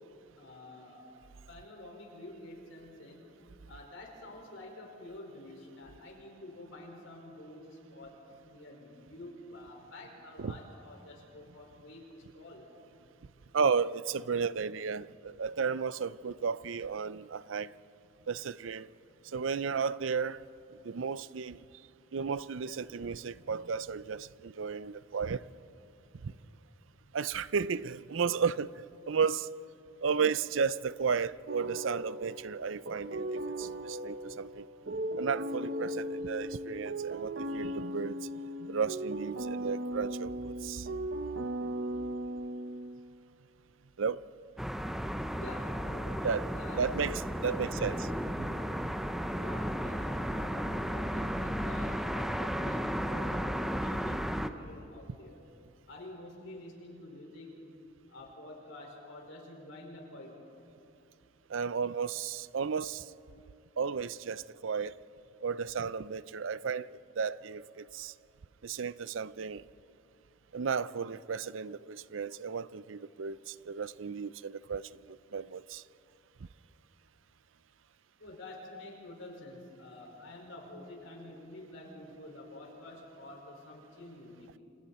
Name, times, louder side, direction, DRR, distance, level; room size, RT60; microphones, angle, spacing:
voice 1, 0.4-1.1 1.5-3.3 3.7-8.2 8.4-12.7 45.4-46.8 47.1-48.2 49.3-53.6 53.9-55.4 55.9-57.5 58.1-60.3 78.2-84.5, left 1 dB, 80° left, 5.2 m, -48 dB
voice 2, 13.5-17.7 18.3-18.9 19.3-20.4 20.8-21.6 22.1-25.4 26.2-26.3 27.1-28.7 29.1-29.5 30.0-34.7 35.2-38.3 38.7-40.9 44.0-44.2 46.2-46.5 46.8-48.0 61.5-63.0 63.8-64.9 65.4-66.9 67.2-68.1 68.6-69.6 70.5-75.8, right 6 dB, 75° right, 0.5 m, -33 dB
sound 1, 31.5-43.2, right 1 dB, 60° right, 0.9 m, -37 dB
sound 2, 44.6-54.5, equal, ahead, 0.7 m, -34 dB
29.0 x 27.5 x 4.3 m
head